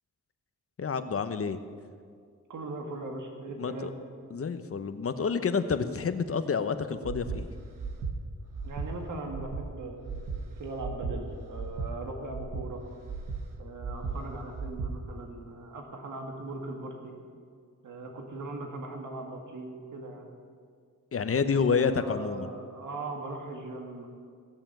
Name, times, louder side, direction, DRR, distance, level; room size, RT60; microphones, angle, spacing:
voice 1, 0.8-1.6 3.6-3.9 4.3-7.5 21.1-22.5, left 5 dB, 45° left, 10 dB, 0.9 m, -28 dB
voice 2, 2.5-3.9 8.6-10.3 10.6-12.8 13.6-17.2 17.8-20.3 21.6-24.1, right 2 dB, 70° right, 2 dB, 2.1 m, -39 dB
Breathing, 7.0-7.4 7.8-8.1 8.5-8.9 9.3-9.6 10.0-10.4 10.8-11.1 11.5-11.9 12.3-12.7 13.0-13.4 13.8-14.2 14.5-14.9, right 5 dB, 90° right, 1.3 m, -35 dB
17.0 x 7.0 x 9.1 m, 2.1 s
cardioid pair, 95°, 31 cm